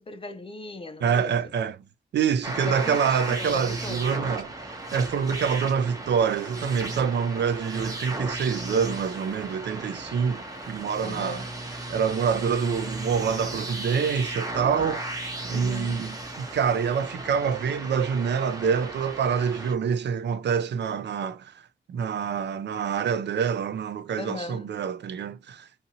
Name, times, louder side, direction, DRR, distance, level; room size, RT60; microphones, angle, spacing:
voice 1, 0.0-1.5 2.6-4.3 11.0-11.6 15.5-16.2 24.2-24.8, left 3 dB, 25° left, 0.4 m, -38 dB
voice 2, 1.0-1.8 2.1-4.5 4.9-11.4 11.9-15.0 15.5-25.7, right 7 dB, 60° right, 0.4 m, -26 dB
sound 1, 2.4-19.7, right 2 dB, 15° right, 0.7 m, -35 dB
2.7 x 2.6 x 2.7 m
wide cardioid pair, 145°, 21 cm